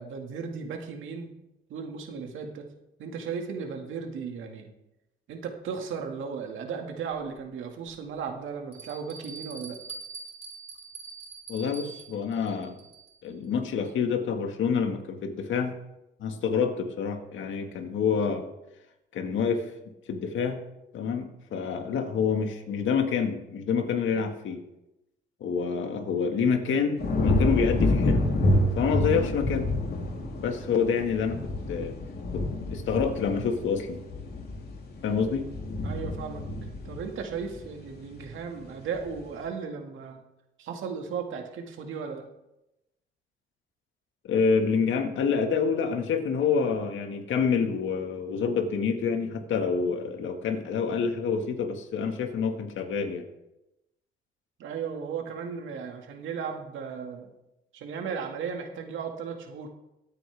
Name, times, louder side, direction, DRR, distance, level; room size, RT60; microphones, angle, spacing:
voice 1, 0.0-1.3 1.7-2.7 3.0-4.7 5.3-9.8 35.8-36.4 36.8-40.2 40.6-42.2 54.6-57.3 57.7-59.7, right 6 dB, 80° right, 3 dB, 2.1 m, -36 dB
Bell, 7.1-7.2 7.9-8.0 8.7-13.3, right 4 dB, 30° right, 3.9 m, -44 dB
voice 2, 11.5-12.8 13.2-15.8 16.2-18.5 19.1-19.7 20.1-20.6 20.9-24.6 25.4-28.2 28.7-29.7 30.4-31.9 32.3-34.0 35.0-35.5 44.2-53.3, left 6 dB, 75° left, 5 dB, 1.9 m, -27 dB
sound 1, 27.0-38.3 38.7-39.2, left 1 dB, 55° left, 3.4 m, -28 dB
23.0 x 8.9 x 3.5 m, 0.92 s
cardioid pair, 90°, 20 cm